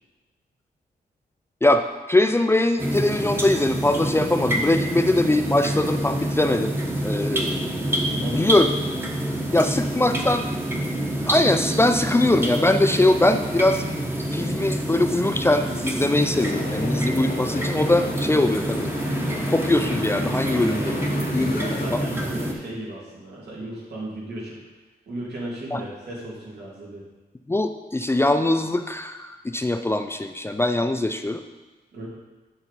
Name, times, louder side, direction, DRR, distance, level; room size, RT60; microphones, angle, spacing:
voice 1, 1.6-6.7 7.0-8.7 9.5-10.5 11.2-13.8 14.3-18.9 19.5-20.9 21.3-21.6 21.9-22.0 25.7-25.8 27.5-31.4, left 2 dB, 15° left, 7 dB, 0.3 m, -22 dB
sound 1, 2.8-22.5, right 1 dB, 15° right, 0.9 m, -27 dB
voice 2, 8.2-8.5 20.5-24.6 25.1-27.0 31.9-32.1, right 1 dB, 85° right, -5 dB, 2.4 m, -35 dB
sound 2, 16.4-21.9, left 2 dB, 65° left, 0.8 m, -34 dB
6.9 x 5.8 x 4.1 m, 1.2 s
wide cardioid pair, 110°, 17 cm